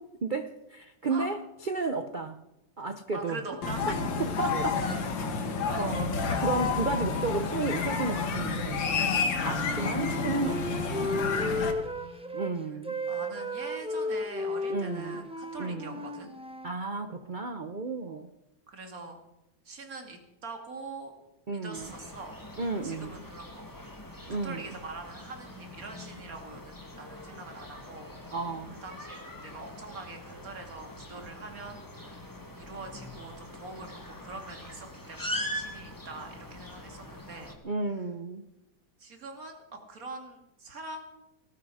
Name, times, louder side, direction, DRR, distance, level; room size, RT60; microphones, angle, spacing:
voice 1, 0.2-2.4 2.8-3.4 4.2-4.8 5.8-6.1 6.4-8.9 9.4-10.8 12.3-13.0 14.7-15.3 15.6-16.0 16.6-18.3 21.5-21.9 22.6-23.2 24.3-24.7 28.3-28.8 37.6-38.5, right 3 dB, 80° right, 9 dB, 0.4 m, -33 dB
voice 2, 3.1-3.9 5.6-5.8 6.2-6.6 9.3-9.7 11.4-12.5 13.1-16.3 18.1-18.2 18.7-19.2 19.6-21.1 21.5-22.4 22.8-23.6 24.4-28.1 28.8-32.2 32.5-37.6 39.0-41.2, right 3 dB, 45° right, 4 dB, 2.8 m, -44 dB
sound 1, 3.6-11.7, left 5 dB, 75° left, 2.2 m, -30 dB
Wind instrument woodwind instrument, 9.1-12.5 12.8-16.7, left 1 dB, 10° right, 0.3 m, -34 dB
sound 2, 21.7-37.5, equal, 10° left, 1.9 m, -42 dB
19.0 x 13.5 x 4.9 m, 0.92 s
omnidirectional pair, 2.1 m